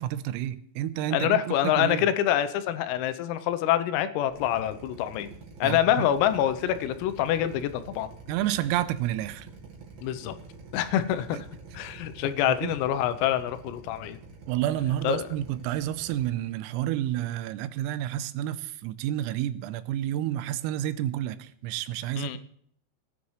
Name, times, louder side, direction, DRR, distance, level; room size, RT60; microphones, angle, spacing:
voice 1, 0.0-1.4 1.8-2.1 5.6-5.8 8.3-9.5 12.6-12.8 14.5-22.4, right 12 dB, 90° right, 3.4 m, -30 dB
voice 2, 1.1-5.3 5.6-8.1 10.0-10.3 10.7-11.4 11.7-14.2 15.0-15.3 22.2-22.4, left 11 dB, 85° left, 3.4 m, -26 dB
Drill, 4.3-16.3, right 4 dB, 55° right, 3.5 m, -47 dB
20.0 x 10.0 x 3.1 m
omnidirectional pair, 5.9 m